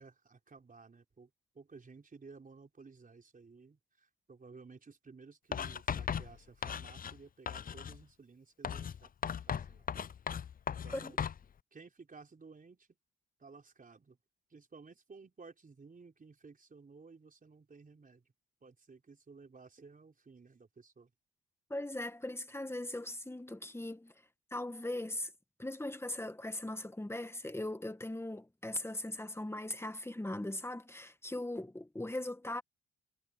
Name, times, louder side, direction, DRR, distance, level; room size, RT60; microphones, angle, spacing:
voice 1, 0.0-9.9 10.7-11.2 11.7-12.9 13.4-14.2 14.5-18.3 18.6-21.1, right 4 dB, 30° right, 4.3 m, -56 dB
Writing, 5.5-7.2 7.5-8.0 8.6-11.4, left 7 dB, 30° left, 0.5 m, -37 dB
voice 2, 21.7-24.1 24.5-25.3 25.6-32.6, left 1 dB, 10° left, 1.5 m, -39 dB
cardioid pair, 105°, 30 cm